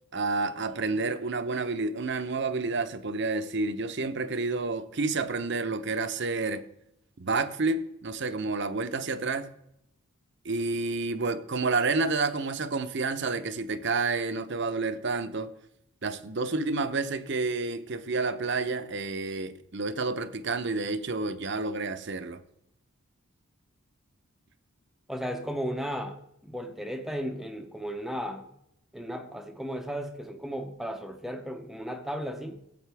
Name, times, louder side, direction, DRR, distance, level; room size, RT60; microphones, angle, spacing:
voice 1, 0.1-6.6 7.2-9.5 10.4-15.5 16.0-22.4, right 3 dB, 55° right, 0.7 m, -29 dB
voice 2, 25.1-28.5 28.9-32.6, equal, ahead, 0.7 m, -35 dB
14.5 x 8.5 x 3.4 m
head